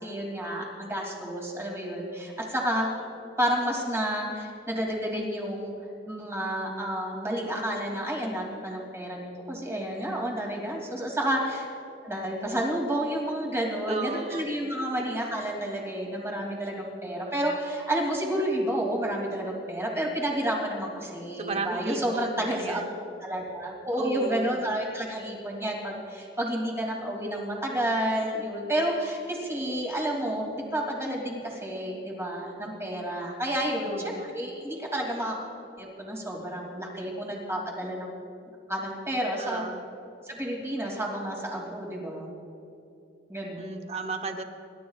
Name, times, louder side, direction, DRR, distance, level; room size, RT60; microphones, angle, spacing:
voice 1, 0.0-2.9 3.4-5.7 6.1-11.7 12.0-22.8 23.2-35.5 35.8-38.1 38.7-39.7 40.2-42.3 43.3-43.7, right 1 dB, 15° right, -1 dB, 2.7 m, -30 dB
voice 2, 13.9-14.5 21.4-22.9 24.0-24.6 33.9-34.3 39.4-39.9 43.6-44.4, right 3 dB, 35° right, 6 dB, 1.0 m, -35 dB
26.5 x 12.5 x 2.4 m, 2.7 s
head